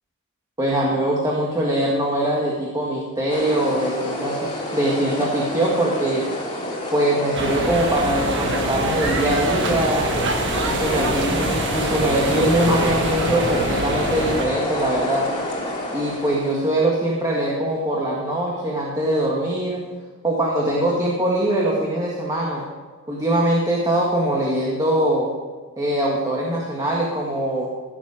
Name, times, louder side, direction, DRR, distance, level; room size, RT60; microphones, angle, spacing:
voice 1, 0.6-6.2 6.9-10.1 10.6-15.3 15.9-19.8 20.2-22.7 23.1-25.3 25.8-27.7, right 1 dB, 20° right, -4 dB, 1.7 m, -22 dB
sound 1, 3.3-16.7, left 1 dB, 25° left, 2.6 m, -28 dB
sound 2, 7.3-14.5, right 2 dB, 60° right, 1.5 m, -25 dB
16.0 x 7.4 x 4.9 m, 1.4 s
head